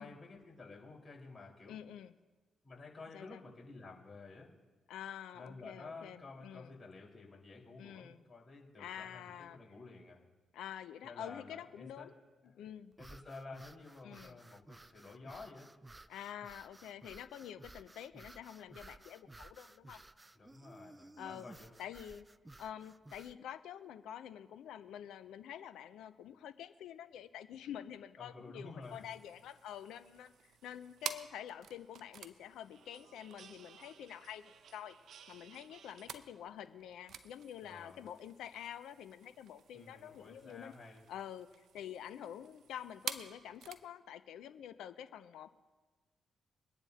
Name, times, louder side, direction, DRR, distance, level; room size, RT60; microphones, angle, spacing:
voice 1, 0.0-1.8 2.6-4.5 5.3-10.2 11.0-12.1 13.0-15.7 20.3-21.7 28.2-29.1 37.6-38.0 39.7-41.1, left 3 dB, 35° left, -2 dB, 4.6 m, -51 dB
voice 2, 1.7-2.1 3.1-3.4 4.9-6.7 7.8-8.2 8.8-9.6 10.5-12.1 12.5-12.9 14.0-14.4 16.1-20.0 21.2-21.5 21.8-22.3 22.6-34.9 35.3-40.7 41.1-41.5 41.7-45.5, left 10 dB, 75° left, 12 dB, 0.6 m, -48 dB
sound 1, 12.9-23.4, right 2 dB, 20° right, 0.5 m, -57 dB
sound 2, 28.8-43.9, right 8 dB, 65° right, 0.8 m, -50 dB
23.5 x 10.5 x 2.9 m, 1.3 s
hypercardioid pair, 45°, 0 cm